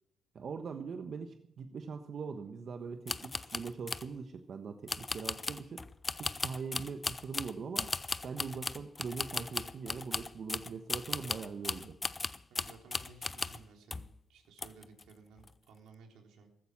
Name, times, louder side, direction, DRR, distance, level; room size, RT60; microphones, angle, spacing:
voice 1, 0.3-5.8 6.2-7.9 8.2-12.0, right 5 dB, 50° right, 7 dB, 1.2 m, -42 dB
sound 1, 3.1-4.1 4.9-13.7 13.9-14.2 14.6-15.0 15.4-15.5, left 3 dB, 25° left, 0.6 m, -37 dB
voice 2, 12.5-16.5, right 4 dB, 80° right, 3 dB, 3.5 m, -57 dB
14.5 x 14.5 x 6.2 m, 0.70 s
cardioid pair, 90°, 0 cm